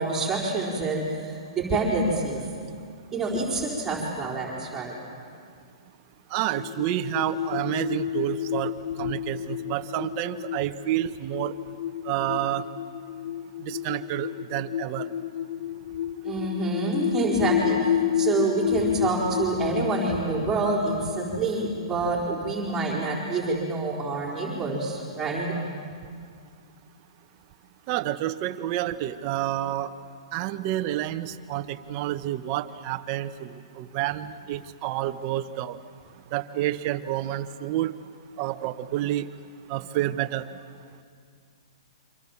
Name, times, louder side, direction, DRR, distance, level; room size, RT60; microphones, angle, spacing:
voice 1, 0.0-2.5 3.1-5.0 16.2-25.5, right 3 dB, 15° right, -4 dB, 4.4 m, -27 dB
voice 2, 6.3-11.6 12.0-12.7 13.6-15.1 27.9-29.9 30.3-35.8 36.3-38.0 38.4-39.3 39.7-40.5, right 13 dB, 35° right, 9 dB, 1.1 m, -29 dB
sound 1, 6.5-22.8, left 10 dB, 60° left, 0.6 m, -31 dB
28.5 x 25.0 x 7.3 m, 2.2 s
hypercardioid pair, 145°, 3 cm